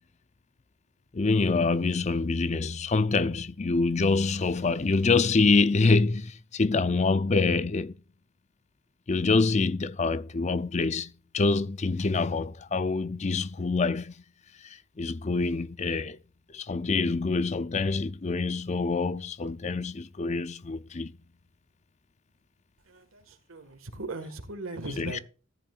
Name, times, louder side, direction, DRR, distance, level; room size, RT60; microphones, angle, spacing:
voice 1, 1.1-7.9 9.1-14.1 14.6-16.2 16.5-21.1 25.0-25.2, left 3 dB, 35° left, 0.5 m, -26 dB
voice 2, 22.9-25.2, right 2 dB, 90° right, 1.8 m, -39 dB
14.0 x 10.0 x 2.5 m
head